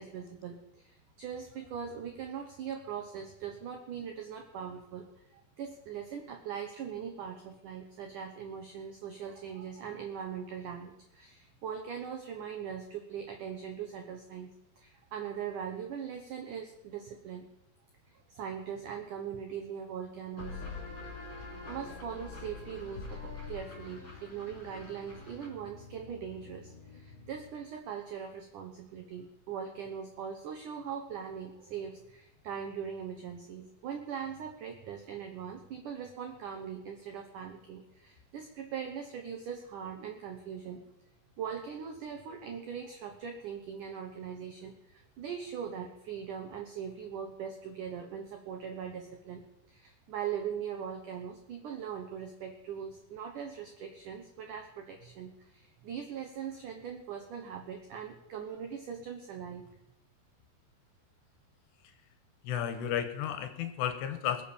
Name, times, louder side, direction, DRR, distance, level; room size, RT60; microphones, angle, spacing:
voice 1, 0.0-17.5 18.3-20.6 21.7-40.9 41.4-49.4 49.7-59.6, right 7 dB, 75° right, 4 dB, 1.9 m, -41 dB
sound 1, 20.4-27.7, left 4 dB, 25° left, 4.3 m, -45 dB
voice 2, 62.4-64.4, left 9 dB, 75° left, 9 dB, 3.0 m, -33 dB
21.5 x 7.3 x 7.1 m, 0.85 s
omnidirectional pair, 5.3 m